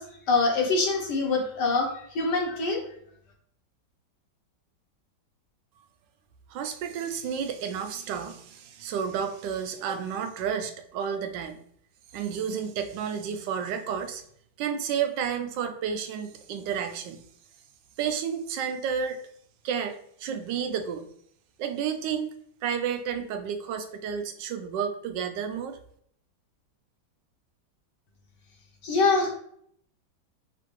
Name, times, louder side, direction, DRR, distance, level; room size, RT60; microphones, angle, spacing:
voice 1, 0.0-2.8 28.8-29.4, left 3 dB, 70° left, 0 dB, 1.6 m, -25 dB
voice 2, 6.5-11.6 12.1-14.2 14.6-17.2 18.0-19.2 19.6-21.1 21.6-22.3 22.6-25.8, right 7 dB, 90° right, 7 dB, 1.3 m, -31 dB
5.4 x 2.5 x 3.1 m, 0.66 s
omnidirectional pair, 1.9 m